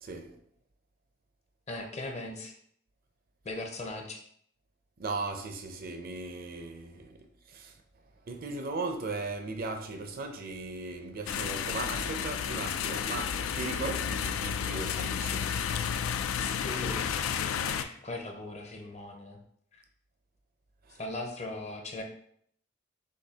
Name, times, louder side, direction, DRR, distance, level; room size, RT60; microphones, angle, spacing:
voice 1, 0.0-0.4 5.0-7.7 8.2-15.5 20.8-21.0, right 3 dB, 45° right, 0.5 m, -37 dB
voice 2, 1.7-2.5 3.4-4.2 16.4-17.2 17.7-19.4 19.7-19.8 21.0-22.0, left 2 dB, 35° left, 0.6 m, -39 dB
sound 1, 11.3-17.8, left 7 dB, 80° left, 0.3 m, -32 dB
6.5 x 2.7 x 2.8 m
head